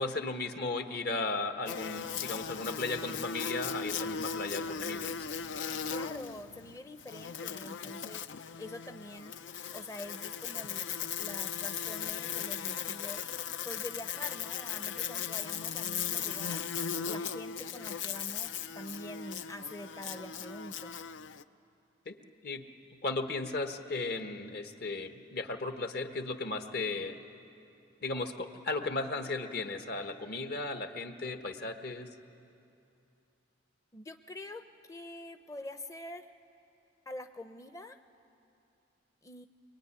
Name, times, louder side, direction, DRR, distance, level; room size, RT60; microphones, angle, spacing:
voice 1, 0.0-5.3 22.0-22.2 22.4-27.2 28.0-32.2, left 3 dB, 60° left, 7 dB, 1.3 m, -36 dB
Buzz, 1.7-21.4, left 7 dB, 85° left, 0.6 m, -38 dB
voice 2, 5.9-9.4 9.7-10.9 11.2-13.2 13.6-16.6 17.0-21.0 33.9-36.3 37.1-38.0 39.2-39.5, left 1 dB, 20° left, 8 dB, 0.6 m, -45 dB
23.5 x 22.5 x 9.9 m, 2.7 s
head